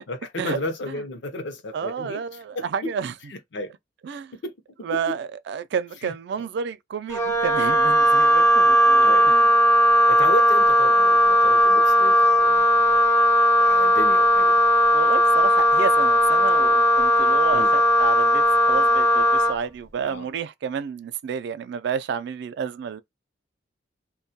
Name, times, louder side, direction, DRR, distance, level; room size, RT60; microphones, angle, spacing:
voice 1, 0.1-2.2 2.5-2.9 3.3-3.7 4.4-4.5 4.9-5.2 6.0-6.5 9.0-9.3 10.1-13.0 13.6-14.5 17.5-17.7 20.0-20.3, left 1 dB, 65° left, 0.6 m, -33 dB
voice 2, 1.7-3.1 4.0-4.3 4.8-9.5 14.9-23.0, right 6 dB, 60° right, 0.3 m, -30 dB
Wind instrument woodwind instrument, 7.1-19.6, equal, 15° left, 0.5 m, -17 dB
2.2 x 2.1 x 2.7 m
head